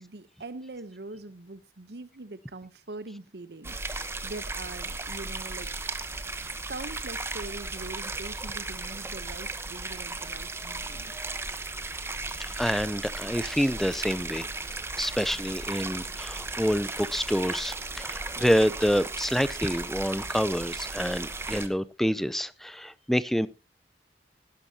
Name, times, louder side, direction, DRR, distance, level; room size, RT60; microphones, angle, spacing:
voice 1, 0.0-6.2 6.7-11.1, right 2 dB, 65° right, 14 dB, 0.9 m, -43 dB
sound 1, 3.6-21.7, right 3 dB, 15° right, 1.0 m, -36 dB
voice 2, 12.4-14.5 15.0-23.5, equal, ahead, 17 dB, 0.5 m, -27 dB
17.5 x 11.5 x 2.8 m, 0.28 s
head